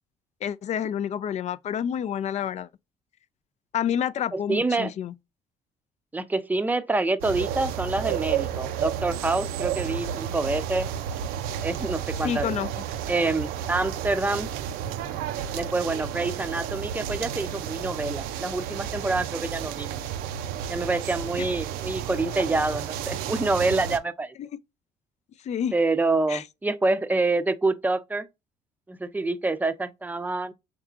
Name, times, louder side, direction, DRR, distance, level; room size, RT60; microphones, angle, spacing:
voice 1, 0.4-2.7 3.7-5.1 12.2-12.7 21.4-21.5 25.4-25.7 26.3-26.4, left 9 dB, 50° left, 0.4 m, -28 dB
voice 2, 4.3-4.9 6.1-10.9 11.6-12.6 13.1-14.5 15.5-19.9 20.7-24.4 25.7-28.3 28.9-30.5, right 3 dB, 10° right, 0.5 m, -27 dB
sound 1, 7.2-24.0, right 9 dB, 80° right, 0.5 m, -32 dB
4.6 x 3.6 x 2.4 m
supercardioid pair, 75°, 15 cm